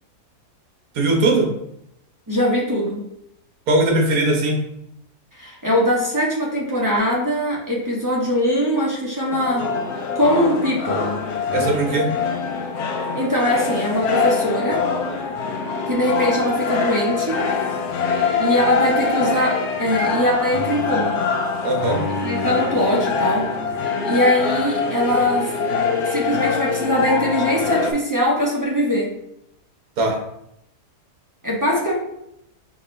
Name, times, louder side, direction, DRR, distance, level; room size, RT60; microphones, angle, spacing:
voice 1, 0.9-1.5 3.7-4.6 11.5-12.1 21.6-22.0 30.0-30.2, right 2 dB, 65° right, 1 dB, 1.4 m, -19 dB
voice 2, 2.3-3.0 5.4-9.7 10.1-11.1 13.1-14.8 15.9-17.4 18.4-21.2 22.2-23.5 23.8-25.5 26.1-29.1 31.4-31.9, equal, 15° right, -5 dB, 0.8 m, -21 dB
sound 1, 9.3-27.9, left 5 dB, 75° left, 1.0 m, -24 dB
4.9 x 3.0 x 3.1 m, 0.79 s
omnidirectional pair, 1.7 m